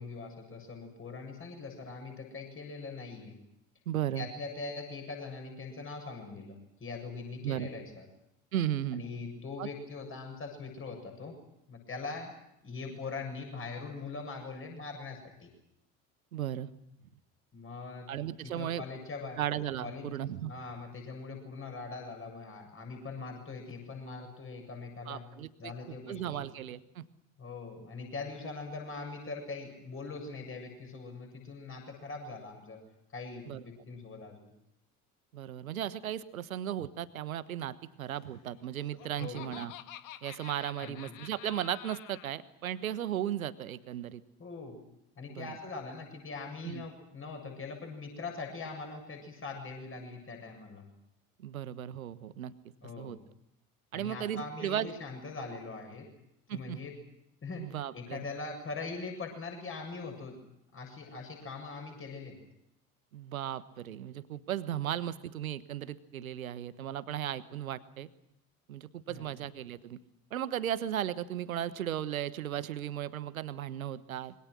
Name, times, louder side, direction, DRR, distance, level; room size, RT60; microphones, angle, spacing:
voice 1, 0.0-3.3 4.2-8.1 8.9-11.3 11.7-12.3 12.6-15.5 17.5-18.1 18.4-19.4 19.8-20.1 20.4-25.2 25.6-26.4 27.4-32.8 33.1-34.5 39.2-39.6 40.8-41.2 44.4-44.8 45.2-50.8 52.8-53.2 53.9-56.1 56.5-56.9 57.4-60.3 60.7-62.4 69.1-69.3, left 4 dB, 30° left, 4 dB, 7.6 m, -42 dB
voice 2, 3.9-4.3 7.4-7.7 8.5-9.0 9.6-9.7 16.3-16.7 18.1-18.8 19.4-20.5 25.1-27.0 33.5-33.6 35.3-39.7 40.2-44.2 45.3-45.5 46.6-46.8 51.4-52.5 52.8-53.2 53.9-54.9 56.5-56.8 57.6-58.2 63.1-68.1 68.7-70.0 70.3-74.3, right 11 dB, 70° right, 16 dB, 1.4 m, -36 dB
Laughter, 38.6-42.3, left 12 dB, 45° left, 1.7 m, -48 dB
27.0 x 24.0 x 6.4 m, 0.80 s
figure-of-eight pair, 65°, 42 cm